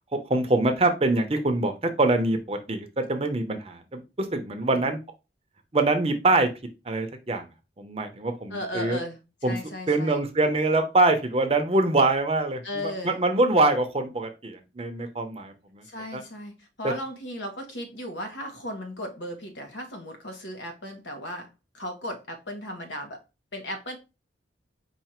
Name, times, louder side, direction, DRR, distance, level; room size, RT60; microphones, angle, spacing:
voice 1, 0.1-5.0 5.7-6.5 6.9-7.5 7.8-9.0 9.4-9.6 9.9-15.8 16.1-16.2 16.8-16.9, right 2 dB, 35° right, 0.7 m, -24 dB
voice 2, 8.5-10.2 12.6-13.2 15.8-21.5 21.7-23.2 23.5-24.0, left 1 dB, 80° left, 1.2 m, -36 dB
4.8 x 2.5 x 4.3 m
head